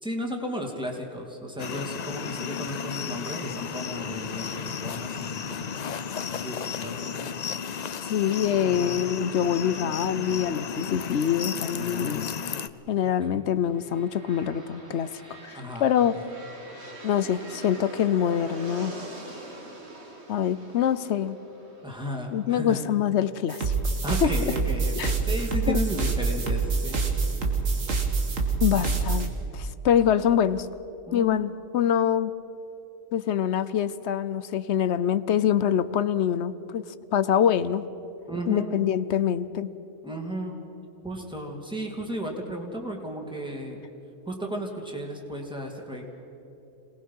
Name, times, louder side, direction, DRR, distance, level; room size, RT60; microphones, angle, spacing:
voice 1, 0.0-5.8 6.3-7.0 8.6-8.9 11.7-12.4 13.3-13.5 15.5-15.8 16.1-16.3 21.8-22.8 24.0-27.8 28.7-29.1 31.1-31.4 38.3-38.8 40.0-40.6 41.0-43.8 44.3-46.0, equal, 5° right, 0 dB, 2.6 m, -34 dB
sound 1, 1.6-12.7, left 7 dB, 50° left, 0.5 m, -33 dB
voice 2, 8.0-12.3 12.9-15.1 15.4-16.1 17.0-18.9 20.3-21.4 22.3-23.7 24.2-24.3 25.0-25.1 25.7-25.8 28.6-30.7 31.1-32.3 33.1-36.8 37.1-37.9 38.5-39.7, left 9 dB, 65° left, 15 dB, 0.9 m, -25 dB
sound 2, 13.6-23.4, right 2 dB, 55° right, 2.5 m, -44 dB
sound 3, 23.5-29.3, right 4 dB, 85° right, 2.3 m, -26 dB
27.0 x 19.5 x 5.6 m, 3.0 s
omnidirectional pair, 1.3 m